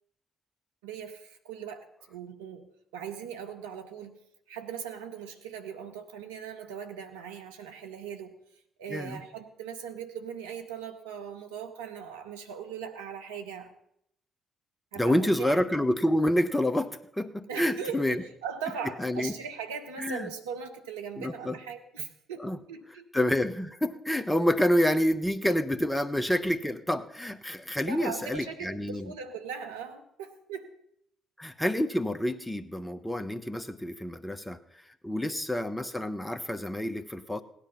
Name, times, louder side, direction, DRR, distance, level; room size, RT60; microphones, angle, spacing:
voice 1, 0.8-4.2 4.5-8.3 8.8-13.7 14.9-15.6 17.5-23.1 27.9-30.7 35.1-35.2, right 7 dB, 85° right, 5 dB, 1.1 m, -39 dB
voice 2, 8.9-9.2 15.0-18.2 19.0-19.3 20.0-20.3 21.2-21.6 22.4-22.6 23.1-29.1 31.4-34.6 35.0-37.4, left 1 dB, 10° left, 10 dB, 1.2 m, -28 dB
17.0 x 10.0 x 5.4 m, 0.75 s
hypercardioid pair, 45°, 0 cm